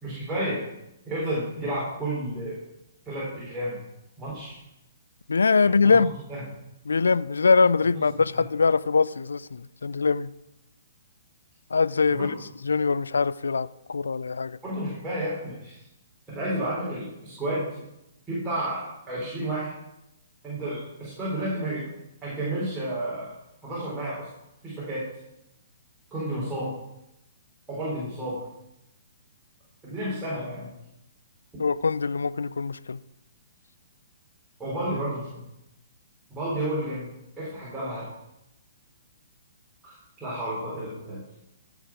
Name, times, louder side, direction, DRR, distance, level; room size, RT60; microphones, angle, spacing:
voice 1, 0.0-0.6 1.1-2.6 3.1-3.8 4.2-4.6 5.8-6.4 8.1-8.4 12.1-12.3 14.6-15.8 16.3-17.8 18.3-19.7 20.4-21.9 22.2-23.3 23.6-24.3 24.6-25.1 26.1-26.8 27.7-28.4 29.8-30.7 34.6-35.4 36.3-38.1 39.8-41.2, right 1 dB, 10° right, 4.6 m, -31 dB
voice 2, 5.3-6.1 6.9-10.3 11.7-12.3 12.6-14.6 31.6-33.0, left 4 dB, 70° left, 0.4 m, -23 dB
15.0 x 6.4 x 5.0 m
figure-of-eight pair, 120°, 0 cm